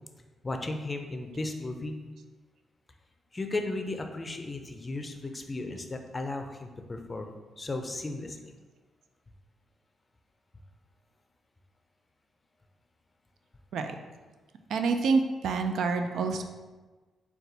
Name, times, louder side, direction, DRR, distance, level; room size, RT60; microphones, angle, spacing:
voice 1, 0.4-2.0 3.3-8.5, left 2 dB, 25° left, 5 dB, 0.5 m, -35 dB
voice 2, 14.7-16.4, right 4 dB, 75° right, 6 dB, 0.3 m, -27 dB
4.1 x 2.3 x 3.9 m, 1.3 s
cardioid pair, 75°, 0 cm